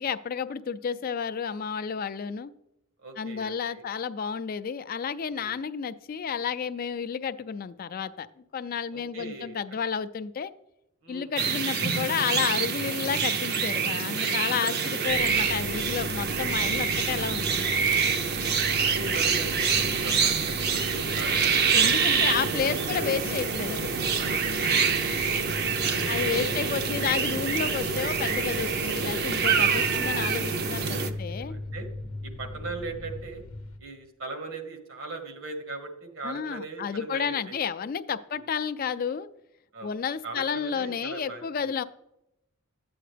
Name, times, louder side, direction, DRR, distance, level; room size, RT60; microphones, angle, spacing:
voice 1, 0.0-2.5 3.2-10.5 11.1-17.7 21.7-24.0 26.1-30.9 31.2-31.5 36.2-39.3 39.8-41.8, left 7 dB, 45° left, 13 dB, 0.3 m, -31 dB
voice 2, 3.0-3.8 5.3-5.6 8.9-9.8 11.0-11.3 14.6-14.9 18.2-22.4 22.7-22.9 26.2-26.6 30.8-31.9 32.2-33.4 33.8-37.5 38.3-38.4 39.7-39.9 40.2-41.7, right 3 dB, 75° right, 5 dB, 1.6 m, -40 dB
sound 1, 11.4-31.1, right 5 dB, 50° right, 0.7 m, -26 dB
sound 2, 15.1-33.8, left 2 dB, 75° left, 0.7 m, -39 dB
11.5 x 8.7 x 3.3 m, 0.85 s
head